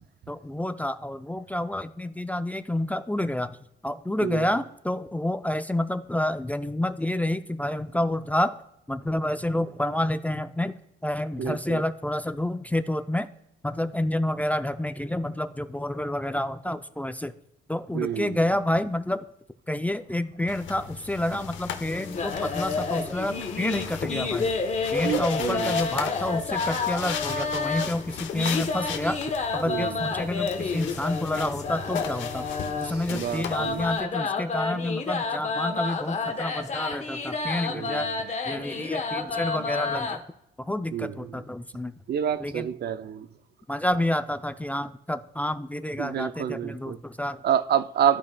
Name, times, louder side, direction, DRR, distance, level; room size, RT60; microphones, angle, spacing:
voice 1, 0.3-3.6 3.8-8.5 8.9-10.7 11.0-13.3 13.6-17.3 17.7-19.3 19.7-24.5 24.9-29.2 29.5-38.1 38.5-40.2 40.6-41.9 42.4-42.7 43.7-47.4, left 1 dB, 5° left, 0.4 m, -29 dB
voice 2, 11.4-11.8 17.9-18.4 25.0-25.8 29.7-29.9 33.1-33.8 37.7-38.0 40.9-41.4 42.1-43.3 46.0-47.0 47.4-48.2, right 9 dB, 55° right, 0.5 m, -28 dB
sound 1, 20.5-34.0, left 8 dB, 75° left, 0.9 m, -37 dB
sound 2, 21.9-40.2, left 4 dB, 35° left, 1.0 m, -30 dB
14.5 x 5.2 x 2.2 m
cardioid pair, 90°, 20 cm